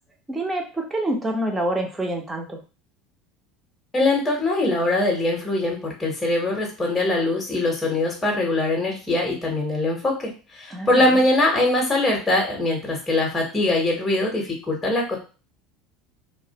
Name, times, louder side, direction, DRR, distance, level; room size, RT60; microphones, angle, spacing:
voice 1, 0.3-2.6 10.7-11.2, right 1 dB, 15° right, 2 dB, 0.7 m, -27 dB
voice 2, 3.9-15.2, left 2 dB, 15° left, -1 dB, 0.9 m, -22 dB
2.3 x 2.1 x 2.8 m, 0.34 s
hypercardioid pair, 80°, 0 cm